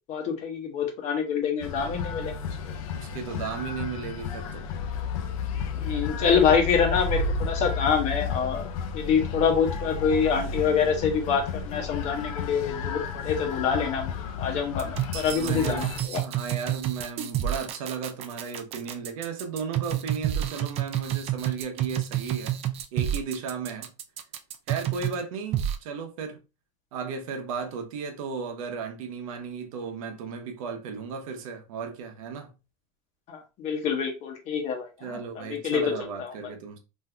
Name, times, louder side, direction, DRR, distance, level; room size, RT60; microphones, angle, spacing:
voice 1, 0.1-2.3 2.6-2.7 5.8-8.7 8.9-14.1 14.4-16.2 33.3-35.9 36.2-36.3, left 6 dB, 40° left, 0.9 m, -26 dB
sound 1, 1.6-16.0, left 5 dB, 75° left, 0.6 m, -32 dB
voice 2, 2.9-4.7 6.2-6.4 15.3-22.6 22.9-23.9 24.7-26.4 26.9-32.5 35.0-36.8, right 6 dB, 80° right, 0.9 m, -35 dB
sound 2, 14.8-25.2 25.5-25.7, right 12 dB, 35° right, 0.4 m, -29 dB
3.6 x 2.7 x 2.2 m
supercardioid pair, 135°, 18 cm